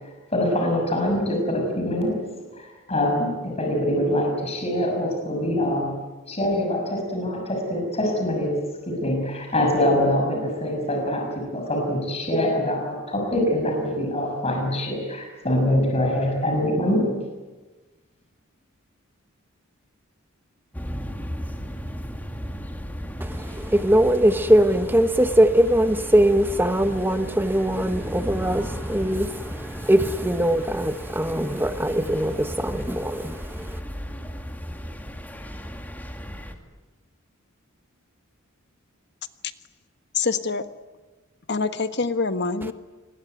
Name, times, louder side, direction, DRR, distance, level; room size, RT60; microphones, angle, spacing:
voice 1, 0.3-2.2 2.5-5.9 6.3-17.0, left 1 dB, 30° left, 6.4 m, -24 dB
sound 1, 20.7-36.6, equal, 10° left, 2.4 m, -35 dB
voice 2, 23.2-33.8, right 1 dB, 10° right, 1.1 m, -21 dB
voice 3, 40.1-40.6 41.5-42.7, left 4 dB, 55° left, 1.4 m, -25 dB
27.0 x 21.5 x 9.4 m
head